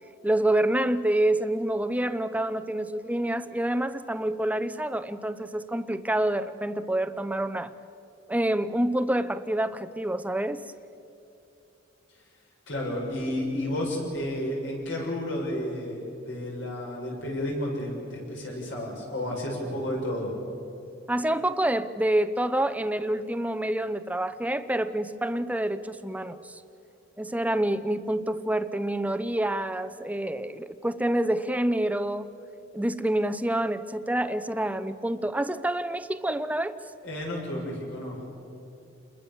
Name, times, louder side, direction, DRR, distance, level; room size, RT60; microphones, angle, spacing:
voice 1, 0.2-7.7 8.3-10.6 21.1-26.6 27.2-32.3 32.7-36.8, right 1 dB, 10° right, 0.7 m, -27 dB
voice 2, 12.7-20.3 37.0-38.2, left 1 dB, 70° left, 7.0 m, -31 dB
29.0 x 21.0 x 7.1 m
head